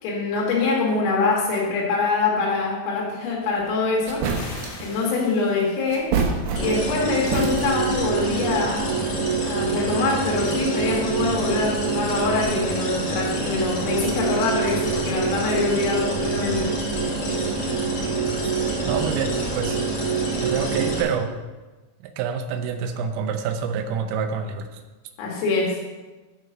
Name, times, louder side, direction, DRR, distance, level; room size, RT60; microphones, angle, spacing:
voice 1, 0.0-4.3 4.8-6.2 6.6-9.0 9.4-16.7 17.0-17.1 25.2-25.8, left 3 dB, 80° left, -3 dB, 4.7 m, -24 dB
sound 1, 3.6-3.7 4.1-4.9 5.9-6.9 7.2-8.0, right 4 dB, 70° right, 2.7 m, -26 dB
sound 2, 4.3-6.4, left 3 dB, 60° left, 2.5 m, -42 dB
sound 3, 6.6-21.0, right 4 dB, 40° left, 3.4 m, -25 dB
voice 2, 18.8-19.8 20.4-21.3 22.0-24.8, right 6 dB, 85° right, 7 dB, 3.4 m, -27 dB
11.0 x 5.3 x 5.7 m, 1.2 s
omnidirectional pair, 5.8 m